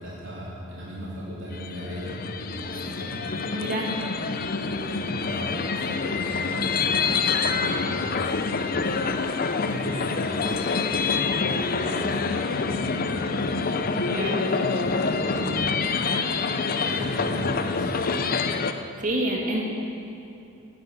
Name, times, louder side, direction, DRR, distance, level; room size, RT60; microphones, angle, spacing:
voice 1, 0.0-3.2 4.6-9.0 9.6-12.3 12.5-13.8 15.1-15.9 16.8-18.4, equal, 65° right, -6 dB, 4.0 m, -38 dB
sound 1, 1.5-18.7, left 4 dB, 45° left, 0.7 m, -26 dB
voice 2, 3.5-3.9 14.1-14.5 15.4-15.6 19.0-19.6, right 1 dB, 40° right, -1 dB, 2.6 m, -28 dB
18.5 x 11.0 x 7.2 m, 2.7 s
head